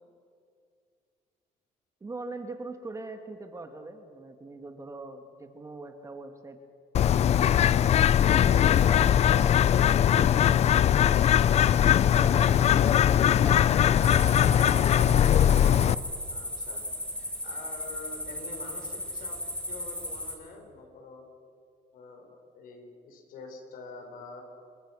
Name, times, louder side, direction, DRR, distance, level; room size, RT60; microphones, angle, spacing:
voice 1, 2.0-6.6 7.2-7.5 8.2-10.3 10.7-11.3 11.8-14.5 15.6-15.7, right 3 dB, 20° right, 6 dB, 1.7 m, -43 dB
Bird, 6.9-15.9, left 10 dB, 45° left, 0.5 m, -21 dB
sound 1, 14.0-20.4, left 1 dB, 5° left, 3.0 m, -36 dB
voice 2, 16.3-16.8 17.4-19.4 19.7-21.3 21.9-24.4, left 4 dB, 65° left, 4 dB, 5.2 m, -46 dB
28.0 x 23.0 x 6.1 m, 2.4 s
cardioid pair, 135°, 16 cm